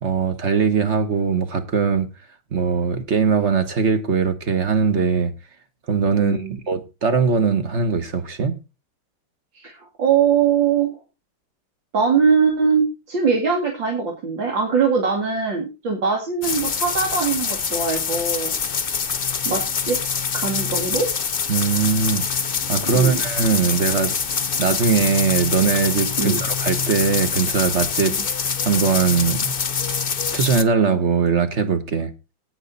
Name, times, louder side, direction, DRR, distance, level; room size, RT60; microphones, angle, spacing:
voice 1, 0.0-2.1 2.5-5.3 5.9-8.5 21.5-22.3 22.7-24.2 24.6-28.2 28.6-29.5 30.3-32.1, right 5 dB, 40° right, 1.5 m, -20 dB
voice 2, 6.2-6.6 9.5-11.0 11.9-18.5 19.4-20.0 20.3-21.1 22.9-23.2 26.2-26.4, right 6 dB, 70° right, 3.2 m, -21 dB
sound 1, 16.4-30.6, left 6 dB, 40° left, 0.9 m, -25 dB
18.0 x 6.5 x 4.1 m
omnidirectional pair, 2.1 m